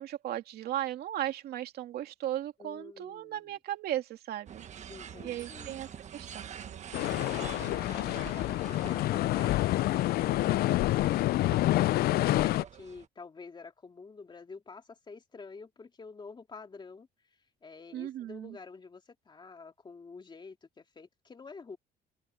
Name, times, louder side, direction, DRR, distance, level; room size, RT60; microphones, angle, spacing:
voice 1, 0.0-4.7 5.2-6.8 17.9-18.6, right 12 dB, 70° right, 2.7 m, -36 dB
voice 2, 2.6-3.6 4.9-5.8 7.4-21.8, left 4 dB, 25° left, 2.8 m, -48 dB
sound 1, 4.5-13.1, right 8 dB, 45° right, 1.4 m, -46 dB
sound 2, 6.9-12.6, left 16 dB, 65° left, 0.4 m, -27 dB
open air
cardioid pair, 110°, 17 cm